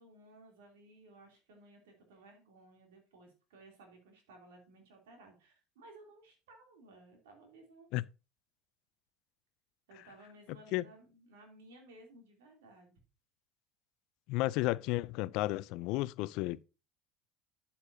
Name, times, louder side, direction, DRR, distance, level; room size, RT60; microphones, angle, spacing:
voice 1, 0.0-7.9 9.9-13.0, right 2 dB, 80° right, 2.9 m, -58 dB
voice 2, 14.3-16.6, left 18 dB, 65° left, 0.3 m, -32 dB
8.3 x 8.1 x 2.7 m
hypercardioid pair, 80°, 0 cm